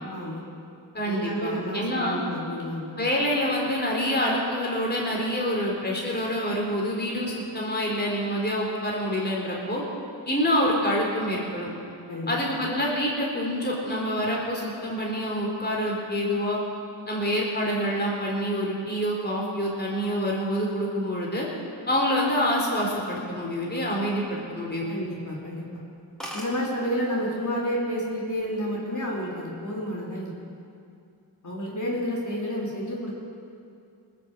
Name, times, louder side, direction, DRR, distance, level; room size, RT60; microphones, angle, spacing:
voice 1, 0.1-0.4 1.0-2.9 12.1-12.6 24.2-24.3 24.9-25.6 26.3-30.3 31.4-33.2, equal, 40° left, -5 dB, 3.9 m, -30 dB
voice 2, 0.9-2.2 3.0-9.8 10.3-11.7 12.3-16.6 17.1-21.5 21.9-24.9, equal, 20° left, -3 dB, 3.9 m, -26 dB
sound 1, 23.7-24.7 25.1-25.3 25.7-25.8 25.9-26.0 26.2-26.6 27.5-27.8 28.1-28.6, equal, ahead, 3.5 m, -40 dB
19.0 x 7.4 x 7.6 m, 2.5 s
supercardioid pair, 50°, 47 cm